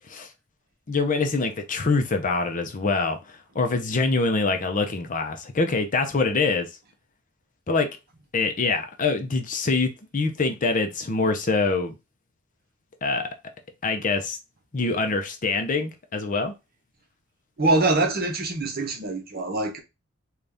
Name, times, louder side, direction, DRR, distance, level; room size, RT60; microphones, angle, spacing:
voice 1, 0.9-6.7 7.7-7.9 8.3-11.9 13.0-13.3 13.8-14.4 14.7-16.5, left 3 dB, 35° left, 0.6 m, -24 dB
voice 2, 17.6-19.8, right 2 dB, 45° right, 0.9 m, -24 dB
3.9 x 2.4 x 3.4 m
head